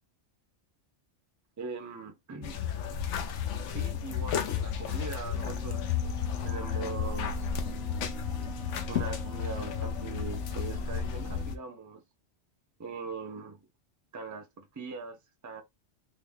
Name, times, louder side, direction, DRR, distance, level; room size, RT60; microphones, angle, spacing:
voice 1, 1.6-2.6 3.7-5.9 6.4-8.1 8.9-12.0 12.8-13.6 14.1-15.2 15.4-15.6, right 4 dB, 25° right, 0.4 m, -41 dB
sound 1, 2.4-11.6, left 7 dB, 90° left, 0.9 m, -33 dB
Wind instrument woodwind instrument, 5.3-11.6, right 3 dB, 55° left, 1.0 m, -45 dB
3.8 x 2.1 x 3.4 m
omnidirectional pair, 1.2 m